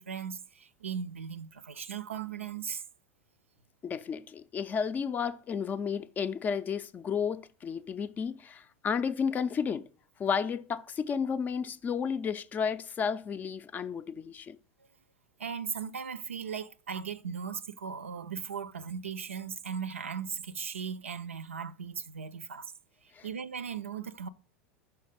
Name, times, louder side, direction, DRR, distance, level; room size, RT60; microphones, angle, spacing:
voice 1, 0.0-2.8 15.4-22.7 23.0-24.3, right 7 dB, 80° right, 0.4 m, -38 dB
voice 2, 3.8-9.9 10.2-14.6 23.1-23.3, left 6 dB, 25° left, 0.4 m, -32 dB
5.7 x 4.4 x 5.0 m
figure-of-eight pair, 85°, 7 cm